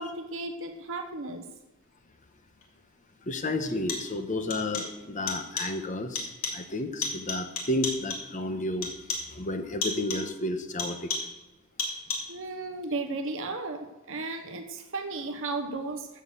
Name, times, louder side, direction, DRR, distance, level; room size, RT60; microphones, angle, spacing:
voice 1, 0.0-1.4 12.3-16.1, right 3 dB, 60° right, 5 dB, 1.0 m, -34 dB
sound 1, 2.6-2.7 3.6-4.2 4.5-5.0 5.3-5.8 6.1-6.7 7.0-8.4 8.8-9.4 9.8-10.4 10.8-11.4 11.8-12.4, left 3 dB, 65° left, 3.0 m, -34 dB
voice 2, 3.2-8.9 9.3-11.1, left 2 dB, 35° left, 7 dB, 1.1 m, -32 dB
15.0 x 6.4 x 6.8 m, 1.1 s
head